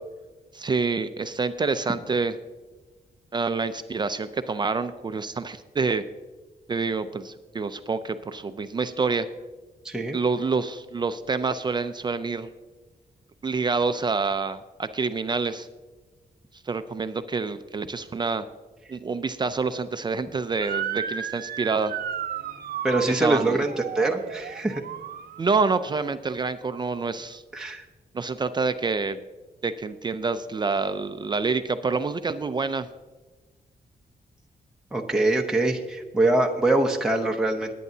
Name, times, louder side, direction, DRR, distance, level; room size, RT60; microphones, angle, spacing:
voice 1, 0.5-2.3 3.3-6.0 6.7-9.3 10.1-12.5 13.4-15.7 16.6-18.5 18.9-21.9 23.1-23.6 25.4-27.4 28.1-29.2 29.6-32.9, right 4 dB, 30° right, 10 dB, 0.4 m, -27 dB
voice 2, 9.8-10.2 22.8-24.8 27.5-27.8 34.9-37.7, right 2 dB, 5° right, 1 dB, 0.7 m, -24 dB
Motor vehicle (road) / Siren, 20.6-25.9, right 9 dB, 70° right, 0.6 m, -34 dB
19.5 x 9.2 x 2.7 m, 1.2 s
wide cardioid pair, 170°, 16 cm